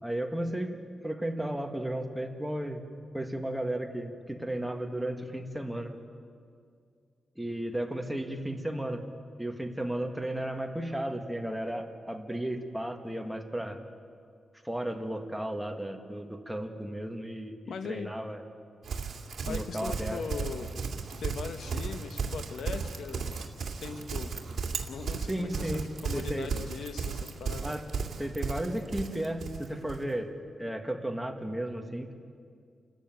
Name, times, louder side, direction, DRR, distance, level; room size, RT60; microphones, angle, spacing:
voice 1, 0.0-0.8 1.0-2.8 3.1-5.9 7.4-9.0 9.4-13.8 14.6-18.4 19.4-20.2 25.3-26.5 27.6-27.9 28.2-30.3 30.6-32.1, right 1 dB, 5° right, 4 dB, 1.7 m, -34 dB
voice 2, 17.7-18.1 19.5-20.9 21.2-23.3 23.8-24.3 24.9-27.7, left 5 dB, 80° left, 8 dB, 1.2 m, -40 dB
Livestock farm animals working animals, 18.8-30.0, right 5 dB, 65° right, 2.3 m, -35 dB
30.0 x 13.5 x 9.2 m, 2.2 s
wide cardioid pair, 130°, 0 cm